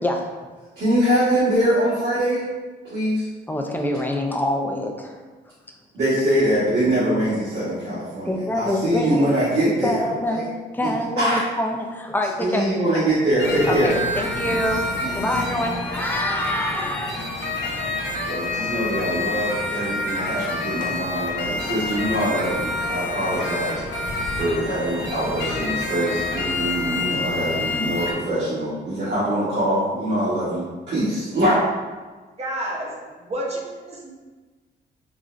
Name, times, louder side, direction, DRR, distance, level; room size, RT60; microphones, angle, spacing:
voice 1, 0.8-2.4 2.9-3.3 5.9-10.4 10.8-10.9 11.2-11.4 12.4-13.9 14.5-14.7 15.0-15.3 18.3-23.8 24.4-31.6, right 1 dB, 65° right, -14 dB, 1.2 m, -23 dB
voice 2, 3.5-5.2 8.3-9.3 9.7-10.5 10.7-12.7 13.7-14.8 15.1-17.4, left 1 dB, 10° left, 1 dB, 0.4 m, -25 dB
sound 1, 13.4-28.1, left 2 dB, 90° left, 0.5 m, -28 dB
voice 3, 32.4-34.1, right 1 dB, 35° right, -2 dB, 0.7 m, -30 dB
3.8 x 2.0 x 2.5 m, 1.3 s
cardioid pair, 85°, 19 cm